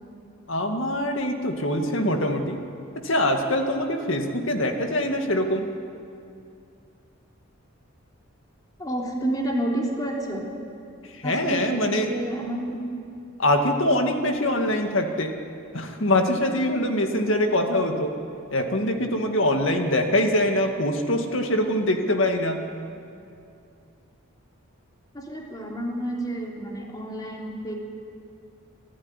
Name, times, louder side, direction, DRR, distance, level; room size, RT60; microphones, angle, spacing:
voice 1, 0.5-2.6 3.0-5.7 11.2-12.1 13.4-15.3 15.7-18.1 18.5-22.6, left 1 dB, 60° left, 4 dB, 2.1 m, -23 dB
voice 2, 8.8-10.5 11.2-12.8 14.1-14.3 25.1-27.7, right 1 dB, 20° left, -1 dB, 3.2 m, -30 dB
25.0 x 14.0 x 9.9 m, 2.5 s
head